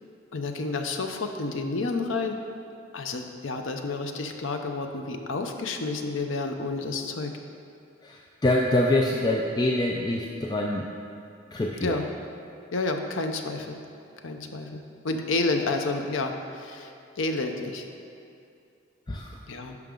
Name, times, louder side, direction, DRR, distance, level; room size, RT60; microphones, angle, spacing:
voice 1, 0.3-2.4 2.9-7.3 11.8-12.1 12.7-13.8 14.2-17.8 19.5-19.8, left 3 dB, 80° left, 5 dB, 0.7 m, -30 dB
voice 2, 8.0-10.9 11.5-12.0 19.1-19.3, left 1 dB, 20° left, -1 dB, 0.4 m, -25 dB
10.5 x 5.9 x 3.8 m, 2.5 s
head